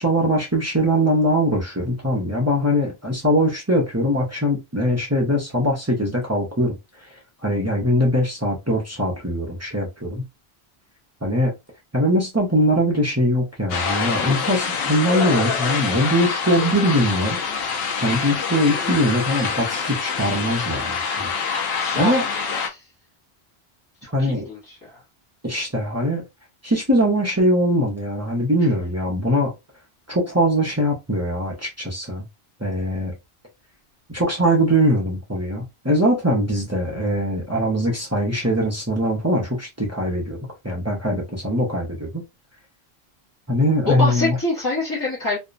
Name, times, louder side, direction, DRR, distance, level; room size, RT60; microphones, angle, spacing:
voice 1, 0.0-6.8 7.0-10.2 11.2-11.5 11.9-17.4 17.7-21.3 22.0-22.2 24.1-24.5 25.4-26.2 26.6-29.5 30.1-32.3 32.6-33.1 34.1-40.4 40.6-42.2 43.5-44.4, equal, 20° right, 0.5 m, -21 dB
sound 1, 13.7-22.7, left 6 dB, 70° left, 0.8 m, -25 dB
voice 2, 21.8-22.2 22.7-22.8 24.0-25.0 43.9-45.4, left 2 dB, 20° left, 0.7 m, -25 dB
2.5 x 2.1 x 2.4 m
omnidirectional pair, 1.1 m